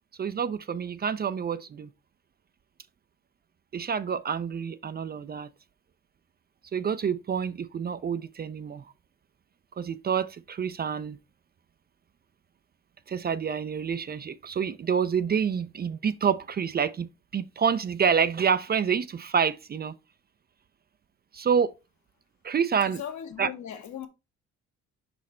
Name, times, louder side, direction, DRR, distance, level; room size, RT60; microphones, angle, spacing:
voice 1, 0.2-1.9 3.7-5.5 6.7-8.9 9.8-11.2 13.1-20.0 21.3-21.7 22.4-23.0 23.4-23.5, right 7 dB, 35° right, 0.4 m, -28 dB
voice 2, 23.0-24.1, left 9 dB, 70° left, 1.3 m, -37 dB
5.2 x 4.3 x 4.2 m
cardioid pair, 90°, 30 cm